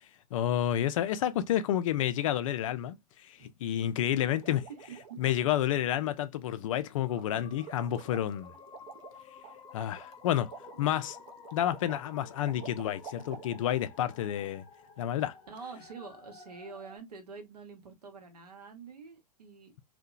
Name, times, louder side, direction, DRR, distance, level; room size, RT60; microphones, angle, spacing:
voice 1, 0.3-3.0 3.2-4.6 5.2-8.5 9.7-10.5 10.8-11.2 11.5-14.6 15.0-15.3, left 11 dB, 55° left, 0.4 m, -30 dB
sound 1, 4.3-5.4 7.1-7.3 7.5-13.8, right 6 dB, 45° right, 0.4 m, -50 dB
voice 2, 4.7-5.2 10.7-10.8 15.5-19.8, right 5 dB, 75° right, 0.8 m, -47 dB
sound 2, 7.1-17.0, left 6 dB, 25° left, 0.8 m, -53 dB
2.7 x 2.1 x 2.3 m
figure-of-eight pair, 100°, 20 cm